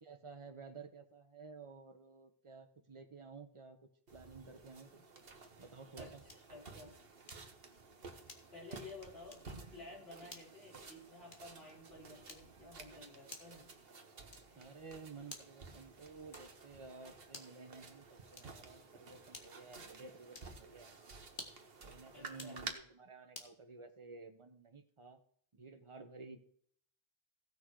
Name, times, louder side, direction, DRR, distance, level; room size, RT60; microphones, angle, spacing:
voice 1, 0.0-3.8 4.1-4.9 5.6-6.2 14.5-20.9 21.8-25.2 25.5-26.4, right 4 dB, 30° right, 7 dB, 1.2 m, -53 dB
sound 1, 4.1-22.7, right 4 dB, 65° right, 1.5 m, -53 dB
sound 2, 6.3-6.6 7.3-7.6 8.3-8.7 9.3-9.6 10.3-10.6 11.3-11.6 12.3-12.7 13.3-13.7 14.3-14.7 15.3-15.7 16.3-16.7 17.3-17.7 18.3-18.7 19.3-19.7 20.3-20.6 21.3-21.7 22.3-22.6 23.3-23.6, left 3 dB, 55° left, 1.8 m, -53 dB
voice 2, 6.5-6.9 8.5-13.7 22.1-22.6, left 2 dB, 75° left, -4 dB, 4.7 m, -53 dB
16.0 x 6.4 x 4.8 m, 0.63 s
omnidirectional pair, 1.1 m